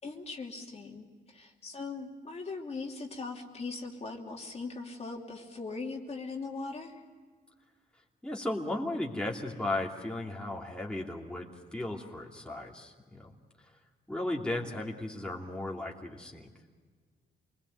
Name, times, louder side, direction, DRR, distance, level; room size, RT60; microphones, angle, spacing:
voice 1, 0.0-7.0, left 3 dB, 35° left, 0 dB, 2.8 m, -40 dB
voice 2, 8.2-13.3 14.1-16.5, left 1 dB, 5° left, -2 dB, 2.8 m, -35 dB
27.5 x 21.0 x 7.9 m, 1.5 s
cardioid pair, 110°, 18 cm